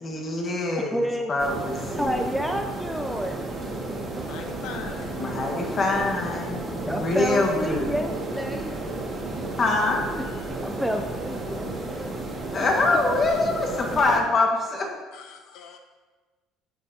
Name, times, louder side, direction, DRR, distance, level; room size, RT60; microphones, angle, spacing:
voice 1, 0.0-2.4 5.2-8.0 9.6-10.1 12.5-14.9, left 2 dB, 30° left, 1 dB, 1.5 m, -25 dB
voice 2, 0.9-1.3 2.0-3.5 6.9-8.7 10.1-10.2 10.6-11.7 12.0-12.1, equal, ahead, 4 dB, 0.4 m, -29 dB
sound 1, 1.4-14.2, right 2 dB, 20° right, 1.8 m, -33 dB
voice 3, 4.2-5.4 7.7-7.8 10.2-10.4 12.6-12.7 15.1-15.8, left 6 dB, 70° left, 5 dB, 0.7 m, -42 dB
12.5 x 7.7 x 2.8 m, 1.3 s
cardioid pair, 145°, 0 cm